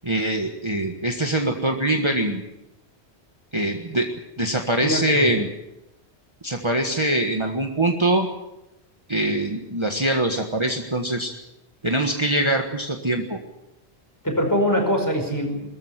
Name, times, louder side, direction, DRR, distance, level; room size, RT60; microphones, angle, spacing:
voice 1, 0.0-2.4 3.5-4.1 4.4-5.5 6.4-8.3 9.1-11.3 11.8-13.4, right 1 dB, 25° right, 3 dB, 1.6 m, -23 dB
voice 2, 4.8-5.3 14.2-15.7, equal, 15° left, 3 dB, 5.2 m, -23 dB
22.0 x 14.0 x 9.8 m, 0.92 s
omnidirectional pair, 1.2 m